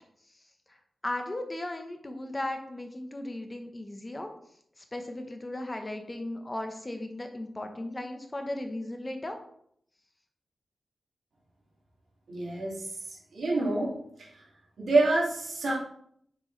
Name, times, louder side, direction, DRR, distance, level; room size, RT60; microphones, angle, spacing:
voice 1, 1.0-4.3 4.8-9.4, left 1 dB, 25° left, 5 dB, 1.0 m, -36 dB
voice 2, 12.3-12.9 13.3-14.3 14.8-15.7, right 2 dB, 85° right, -4 dB, 2.3 m, -27 dB
6.7 x 4.6 x 3.2 m, 0.68 s
cardioid pair, 70°, 0 cm